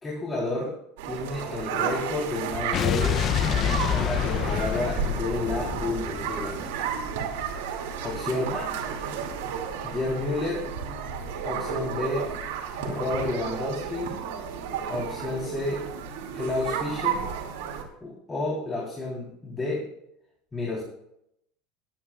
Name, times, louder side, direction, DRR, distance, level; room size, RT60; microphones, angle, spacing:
voice 1, 0.0-0.7 1.0-6.6 8.0-8.7 9.8-10.7 11.4-12.3 12.8-14.2 14.9-15.8 16.3-17.2 18.0-19.9 20.5-20.8, left 2 dB, 20° left, -3 dB, 3.5 m, -30 dB
sound 1, 1.0-17.8, right 7 dB, 75° right, 2.4 m, -32 dB
Explosion, 2.7-7.1, left 9 dB, 40° left, 0.6 m, -27 dB
20.5 x 10.0 x 2.4 m, 0.76 s
supercardioid pair, 110°, 0 cm